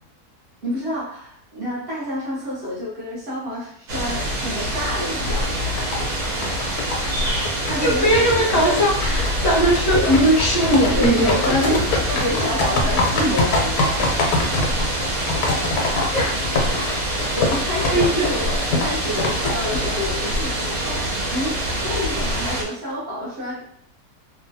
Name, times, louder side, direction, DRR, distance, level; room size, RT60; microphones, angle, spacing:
voice 1, 0.6-5.6 7.6-8.9 9.9-10.1 11.0-14.1 17.2-23.6, left 1 dB, 50° right, -7 dB, 0.9 m, -28 dB
sound 1, 3.9-22.6, equal, 80° right, 1.3 m, -25 dB
sound 2, 5.2-20.1, left 2 dB, 85° left, 1.2 m, -25 dB
voice 2, 7.8-11.8 16.1-16.3 17.9-18.3, equal, 65° left, -3 dB, 0.9 m, -19 dB
3.0 x 2.2 x 2.6 m, 0.62 s
omnidirectional pair, 1.6 m